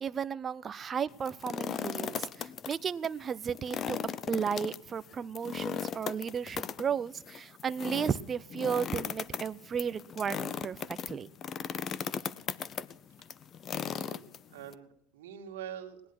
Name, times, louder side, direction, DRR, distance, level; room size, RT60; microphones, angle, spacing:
voice 1, 0.0-4.0 4.3-11.3, right 7 dB, 25° right, 15 dB, 0.5 m, -34 dB
sound 1, 1.1-2.7 3.0-3.1 3.5-14.7, left 8 dB, 30° left, 0.6 m, -37 dB
voice 2, 14.0-16.0, right 9 dB, 85° right, 3 dB, 2.0 m, -45 dB
18.0 x 10.5 x 6.0 m, 0.72 s
supercardioid pair, 125°, 0 cm